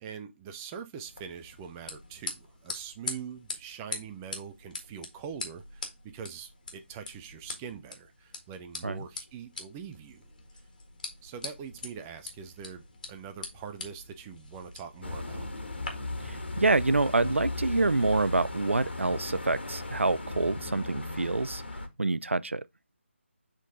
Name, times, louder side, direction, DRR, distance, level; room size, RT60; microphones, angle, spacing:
voice 1, 0.0-10.2 11.2-15.5, right 7 dB, 10° right, 0.4 m, -43 dB
sound 1, 1.1-15.9, left 3 dB, 40° left, 1.8 m, -43 dB
sound 2, 15.0-21.9, left 2 dB, 60° left, 1.7 m, -37 dB
voice 2, 16.2-21.6 22.0-22.6, right 2 dB, 75° right, 0.4 m, -27 dB
7.2 x 3.8 x 3.7 m
figure-of-eight pair, 155°, 7 cm